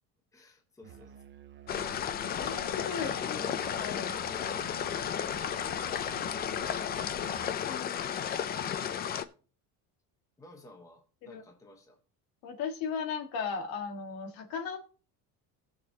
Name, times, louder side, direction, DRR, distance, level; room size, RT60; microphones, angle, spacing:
voice 1, 0.3-1.2 3.0-3.7 3.9-5.0 10.4-12.0, left 1 dB, 10° left, 1.1 m, -54 dB
Musical instrument, 0.8-7.7, right 13 dB, 30° right, 0.7 m, -51 dB
sound 1, 1.7-9.2, left 8 dB, 25° left, 0.4 m, -33 dB
voice 2, 2.3-3.4 3.8-4.1 6.2-6.3 7.7-8.1 11.2-11.4 12.4-14.8, left 6 dB, 60° left, 1.8 m, -36 dB
19.5 x 6.5 x 2.9 m
cardioid pair, 175°, 38 cm